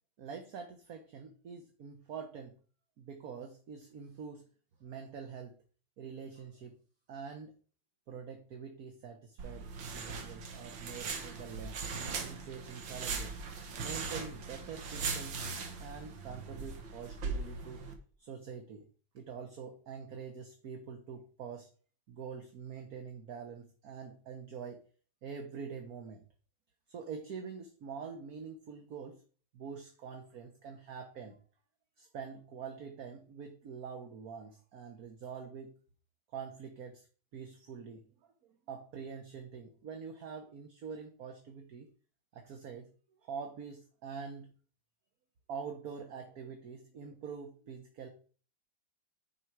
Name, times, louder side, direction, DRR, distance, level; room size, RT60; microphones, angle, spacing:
voice 1, 0.2-2.5 3.0-4.5 4.8-5.6 6.0-6.8 7.1-7.5 8.1-11.8 12.2-13.3 13.8-17.8 18.2-18.9 19.1-21.7 22.1-24.8 25.2-26.2 26.9-29.2 29.5-31.4 32.0-35.7 36.3-37.1 37.3-41.9 42.3-42.9 43.2-44.5 45.5-48.1, right 6 dB, 55° right, 5 dB, 1.4 m, -45 dB
sound 1, 9.4-17.9, right 4 dB, 75° right, 2.0 m, -40 dB
10.0 x 6.1 x 4.6 m, 0.41 s
omnidirectional pair, 2.1 m